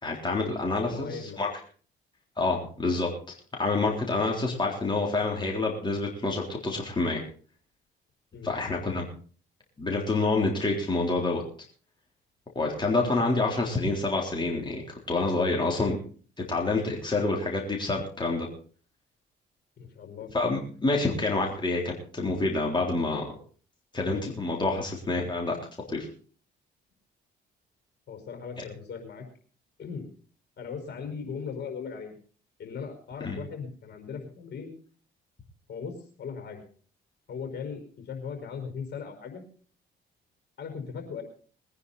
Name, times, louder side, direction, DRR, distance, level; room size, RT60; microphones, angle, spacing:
voice 1, 0.0-1.5 2.4-3.1 3.5-7.2 8.4-9.1 9.8-11.4 12.6-16.0 16.5-18.5 20.3-23.2 23.9-25.6 25.9-26.1 28.6-28.7 33.2-33.4, left 3 dB, 25° left, -1 dB, 3.7 m, -27 dB
voice 2, 0.8-1.4 8.3-8.6 19.8-20.3 28.1-29.2 29.8-30.1 30.6-32.1 32.6-34.7 35.7-36.6 37.3-39.4 40.6-41.2, left 6 dB, 60° left, 5 dB, 5.1 m, -38 dB
21.5 x 9.7 x 4.2 m, 0.42 s
cardioid pair, 90°, 20 cm